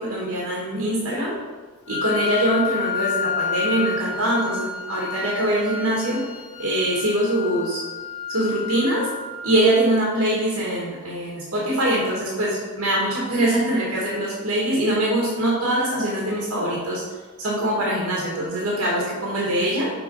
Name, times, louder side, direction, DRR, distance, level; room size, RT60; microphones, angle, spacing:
voice 1, 0.0-1.4 1.9-6.2 6.6-7.8 8.3-9.1 9.4-17.0 17.4-19.9, right 1 dB, 70° right, -4 dB, 1.7 m, -23 dB
Wind instrument woodwind instrument, 1.9-9.8, left 6 dB, 80° left, 2.2 m, -30 dB
7.0 x 4.3 x 5.3 m, 1.3 s
head